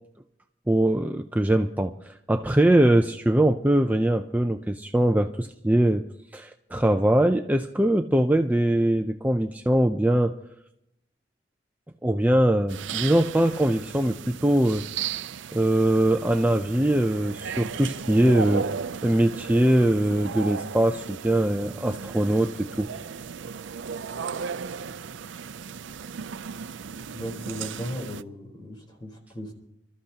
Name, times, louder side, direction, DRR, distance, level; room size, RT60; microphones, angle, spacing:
voice 1, 0.7-6.0 6.3-10.3 12.0-14.8 15.5-18.7 19.0-22.9, right 1 dB, 10° right, 5 dB, 0.5 m, -22 dB
sound 1, 12.7-28.2, right 6 dB, 80° right, 0.5 m, -35 dB
voice 2, 27.1-29.5, equal, 25° left, 1 dB, 3.9 m, -36 dB
28.0 x 13.5 x 2.9 m, 0.80 s
head